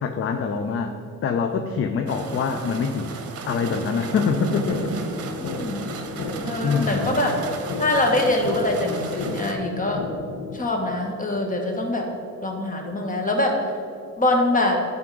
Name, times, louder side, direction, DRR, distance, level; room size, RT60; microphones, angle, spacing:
voice 1, 0.0-3.1 3.5-5.0 6.2-6.3 6.6-7.2, left 5 dB, 45° left, 6 dB, 0.5 m, -25 dB
sound 1, 2.1-9.5, right 4 dB, 55° right, 0.9 m, -34 dB
sound 2, 4.7-10.7, left 3 dB, 75° left, 1.0 m, -33 dB
voice 2, 5.4-5.8 6.4-7.4 7.8-10.0 10.5-12.1 12.4-13.6 14.2-14.8, left 1 dB, 25° left, 1 dB, 1.4 m, -23 dB
10.5 x 3.7 x 4.9 m, 2.4 s
cardioid pair, 90°, 30 cm